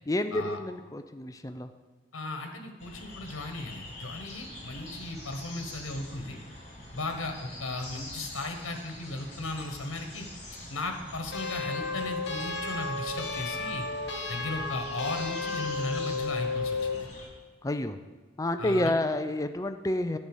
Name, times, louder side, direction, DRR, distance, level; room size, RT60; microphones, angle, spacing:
voice 1, 0.1-1.7 17.6-18.0 18.4-20.2, left 1 dB, 15° left, 9 dB, 0.4 m, -29 dB
voice 2, 2.1-6.4 6.9-10.3 10.7-13.9 14.3-17.1 18.6-18.9, left 2 dB, 80° left, 5 dB, 1.3 m, -36 dB
sound 1, 2.8-17.3, left 1 dB, 35° left, 3.4 m, -45 dB
sound 2, 11.3-17.0, left 3 dB, 55° left, 1.7 m, -33 dB
10.5 x 5.5 x 7.9 m, 1.3 s
head